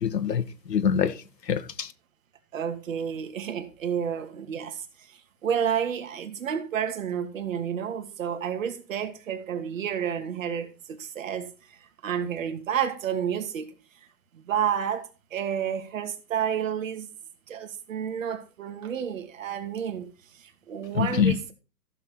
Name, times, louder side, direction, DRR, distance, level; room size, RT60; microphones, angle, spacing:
voice 1, 0.0-1.9 20.9-21.3, left 8 dB, 75° left, 1.8 m, -25 dB
voice 2, 2.5-4.8 5.1-11.5 12.0-13.7 14.3-17.1 17.5-20.1 20.4-21.5, right 8 dB, 50° right, 2.6 m, -30 dB
15.0 x 7.3 x 4.4 m
hypercardioid pair, 145°, 50 cm